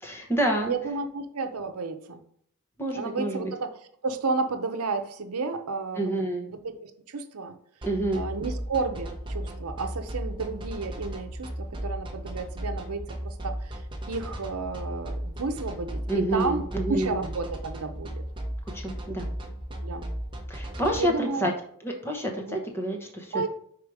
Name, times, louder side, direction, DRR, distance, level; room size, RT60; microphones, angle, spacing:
voice 1, 0.0-0.7 2.8-3.5 5.9-6.5 7.8-8.3 16.1-17.2 18.7-19.3 20.5-21.5 21.8-23.4, right 1 dB, 10° left, 1 dB, 1.0 m, -28 dB
voice 2, 0.6-2.2 2.9-3.7 4.0-6.1 6.5-7.5 8.1-13.8 14.1-18.2 19.8-20.1 21.0-21.5 22.5-22.6 23.3-23.5, right 3 dB, 85° right, 7 dB, 0.7 m, -32 dB
sound 1, 7.8-21.0, right 1 dB, 20° right, 0.9 m, -35 dB
4.9 x 4.5 x 4.8 m, 0.65 s
head